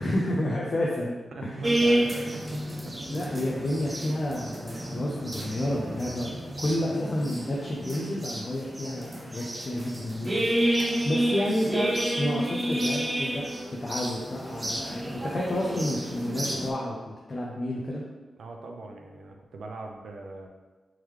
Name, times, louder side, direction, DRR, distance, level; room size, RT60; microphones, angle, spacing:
voice 1, 0.0-1.2 1.4-1.7 3.1-10.5 11.0-11.9 12.2-13.4 13.7-18.0, left 1 dB, 35° left, -3 dB, 0.5 m, -30 dB
voice 2, 1.3-2.9 18.4-20.5, right 2 dB, 75° right, 2 dB, 0.4 m, -40 dB
sound 1, 1.6-16.7, right 1 dB, 20° right, 0.5 m, -30 dB
3.6 x 3.1 x 3.1 m, 1.2 s
wide cardioid pair, 135°, 0 cm